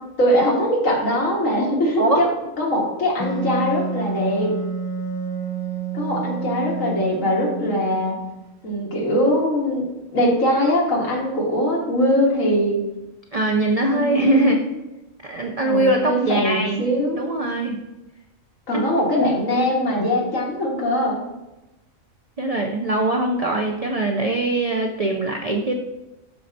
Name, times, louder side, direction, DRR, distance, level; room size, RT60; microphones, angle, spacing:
voice 1, 0.2-2.3 2.6-4.5 5.9-8.2 8.6-9.8 10.1-12.8 13.9-14.6 15.6-17.2 18.7-21.2, equal, 75° left, -2 dB, 2.0 m, -21 dB
voice 2, 2.0-2.3 13.3-14.6 15.2-16.9 17.2-17.8 18.7-18.9 22.4-25.7, right 2 dB, 65° right, 2 dB, 0.3 m, -21 dB
Wind instrument woodwind instrument, 3.2-8.6, right 4 dB, 20° left, 1.0 m, -29 dB
12.5 x 4.4 x 2.7 m, 1.0 s
omnidirectional pair, 1.4 m